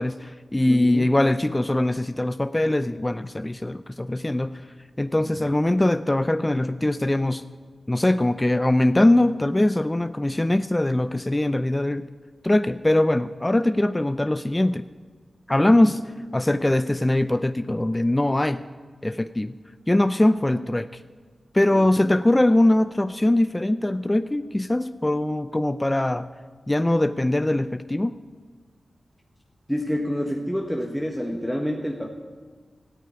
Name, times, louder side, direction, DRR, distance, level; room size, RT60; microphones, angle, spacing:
voice 1, 0.0-4.6 5.0-7.4 7.9-12.1 12.4-14.9 15.5-16.0 16.3-18.6 19.0-19.5 19.9-21.0 21.5-26.3 26.7-28.2, left 1 dB, 20° left, 11 dB, 0.5 m, -22 dB
voice 2, 0.7-1.1 5.2-5.3 15.5-15.9 21.7-22.1 29.7-32.1, equal, ahead, 0 dB, 1.5 m, -28 dB
14.5 x 8.7 x 9.7 m, 1.5 s
cardioid pair, 55°, 0 cm